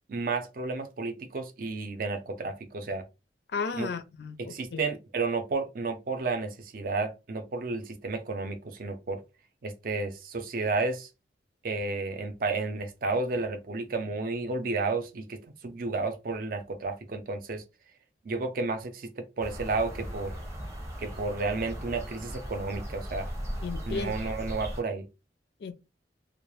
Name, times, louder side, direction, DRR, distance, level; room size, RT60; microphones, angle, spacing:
voice 1, 0.1-3.1 3.7-3.9 4.4-9.2 9.6-11.1 11.6-17.6 18.2-20.4 21.0-23.3 23.9-25.1, right 3 dB, 50° right, 0.5 m, -32 dB
voice 2, 3.5-4.8 23.6-24.1 25.6-25.7, left 5 dB, 65° left, 0.4 m, -34 dB
sound 1, 19.4-24.8, equal, 15° right, 0.7 m, -38 dB
2.3 x 2.0 x 3.0 m
head